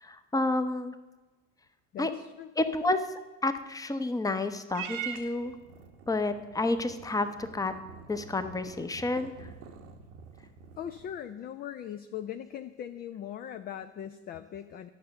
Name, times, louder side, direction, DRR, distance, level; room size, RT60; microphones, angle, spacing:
voice 1, 0.0-0.9 2.0-2.1 2.6-3.1 3.4-5.5 6.1-7.7 8.1-9.5, left 2 dB, 10° left, 9 dB, 0.7 m, -30 dB
voice 2, 1.9-2.5 10.8-14.9, left 10 dB, 25° left, 9 dB, 0.4 m, -40 dB
Purr / Meow, 4.7-11.2, right 8 dB, 65° right, 1.0 m, -44 dB
11.0 x 6.6 x 6.7 m, 1.2 s
figure-of-eight pair, 60°, 40 cm